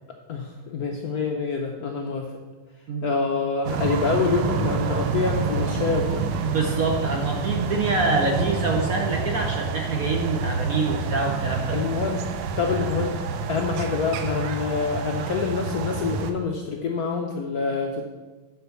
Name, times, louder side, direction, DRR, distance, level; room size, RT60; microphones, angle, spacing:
voice 1, 0.3-2.3 3.0-6.2 8.1-8.9 11.7-12.2 12.6-13.2 13.5-18.0, left 4 dB, 65° left, 2 dB, 0.9 m, -26 dB
sound 1, 3.6-16.3, right 5 dB, 80° right, 1.6 m, -28 dB
voice 2, 6.4-11.8 12.8-12.9, right 3 dB, 55° right, 2 dB, 1.0 m, -26 dB
9.2 x 4.5 x 6.8 m, 1.3 s
omnidirectional pair, 2.3 m